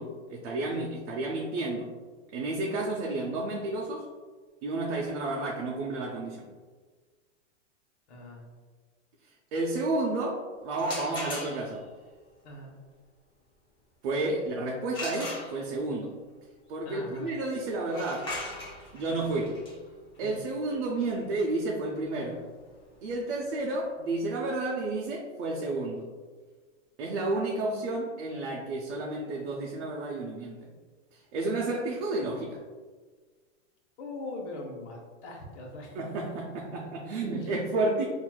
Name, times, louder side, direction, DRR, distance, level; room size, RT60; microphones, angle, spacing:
voice 1, 0.0-1.9 2.3-4.1 4.6-6.5 9.5-11.9 14.0-16.2 16.7-18.3 18.9-19.6 20.2-22.4 23.0-26.1 27.0-30.7 31.1-32.6 35.9-38.0, right 2 dB, 65° right, -1 dB, 0.6 m, -31 dB
voice 2, 8.1-8.4 12.4-12.7 16.8-17.3 20.2-20.4 34.0-36.0 37.4-37.5, left 2 dB, 65° left, -1 dB, 1.0 m, -41 dB
sound 1, 10.7-11.9 14.9-15.9 17.8-23.5, left 2 dB, 15° left, 0.5 m, -40 dB
4.3 x 2.6 x 2.2 m, 1.4 s
supercardioid pair, 145°, 36 cm